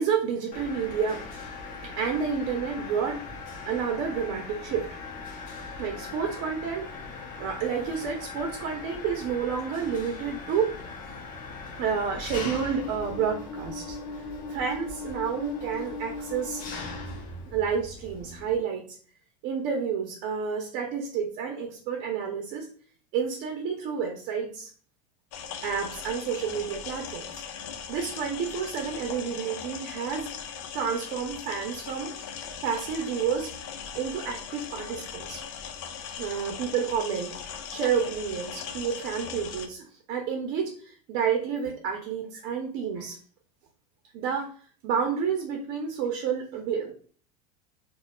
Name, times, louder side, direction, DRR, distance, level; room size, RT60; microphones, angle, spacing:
voice 1, 0.0-1.3 1.8-3.2 3.6-5.0 5.8-6.9 7.4-10.7 11.7-16.7 17.5-18.8 19.4-22.7 23.1-24.7 25.6-27.2 27.9-30.3 30.7-32.1 32.6-33.5 33.9-35.4 36.2-37.3 37.7-43.2 44.1-44.5 44.8-46.9, right 6 dB, 60° right, 2 dB, 0.7 m, -30 dB
Mechanisms, 0.5-18.6, left 3 dB, 40° left, 0.9 m, -39 dB
sound 1, 25.3-39.7, left 7 dB, 65° left, 0.5 m, -39 dB
4.2 x 2.3 x 2.3 m, 0.43 s
supercardioid pair, 100°, 20 cm